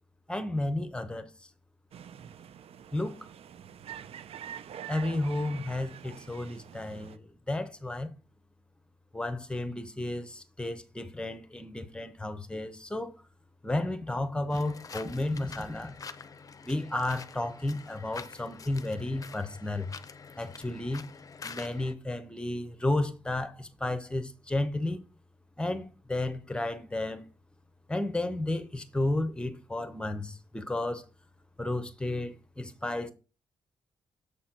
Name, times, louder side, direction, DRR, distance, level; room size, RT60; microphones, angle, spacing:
voice 1, 0.3-1.3 2.9-3.3 4.9-8.1 9.1-13.1 13.6-16.0 16.6-19.9 20.4-21.1 21.4-25.0 25.6-27.2 27.9-31.0 31.6-33.1, left 2 dB, 10° left, 0.8 m, -32 dB
sound 1, 1.9-7.2, right 9 dB, 70° right, 0.5 m, -46 dB
sound 2, 14.5-21.9, left 5 dB, 35° left, 0.6 m, -46 dB
7.0 x 4.2 x 5.8 m
wide cardioid pair, 135°, 10 cm